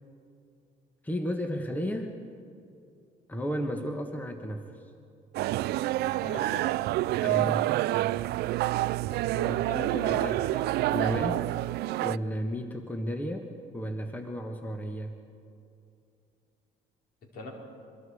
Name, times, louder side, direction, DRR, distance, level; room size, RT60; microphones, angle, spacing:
voice 1, 1.0-2.2 3.3-4.9 7.2-7.7 10.0-10.4 10.9-11.5 12.0-15.2, equal, 10° left, 5 dB, 1.3 m, -33 dB
sound 1, 5.3-12.2, right 16 dB, 70° right, 0.4 m, -28 dB
voice 2, 6.2-6.9 9.3-10.4 17.3-17.5, left 2 dB, 60° left, 0 dB, 4.6 m, -39 dB
25.0 x 22.0 x 4.9 m, 2.5 s
cardioid pair, 110°, 17 cm